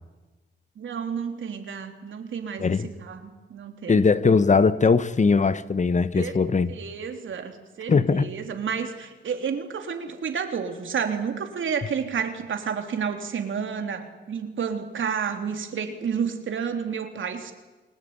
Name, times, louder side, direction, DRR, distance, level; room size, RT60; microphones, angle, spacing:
voice 1, 0.8-4.1 6.1-6.4 6.7-17.5, right 6 dB, 75° right, 3.5 m, -30 dB
voice 2, 3.9-6.7 7.9-8.3, left 4 dB, 35° left, 1.1 m, -20 dB
29.0 x 20.0 x 9.7 m
wide cardioid pair, 105°, 20 cm